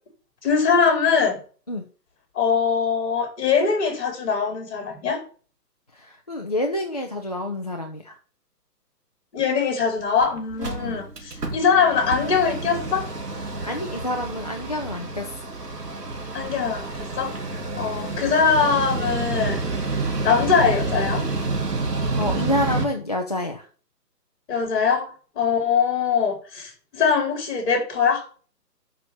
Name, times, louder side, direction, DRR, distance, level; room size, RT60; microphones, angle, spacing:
voice 1, 0.4-1.4 2.3-5.2 9.3-13.1 16.3-17.4 17.8-19.6 20.2-21.3 24.5-28.2, left 6 dB, 40° left, 4.1 m, -22 dB
voice 2, 5.9-8.1 10.6-11.0 13.6-15.4 22.2-23.7, left 1 dB, 25° left, 0.5 m, -28 dB
Mechanical fan, 9.8-9.9 10.2-10.3 10.5-22.9, right 3 dB, 70° right, 2.8 m, -29 dB
6.7 x 6.1 x 7.5 m
figure-of-eight pair, 145°, 49 cm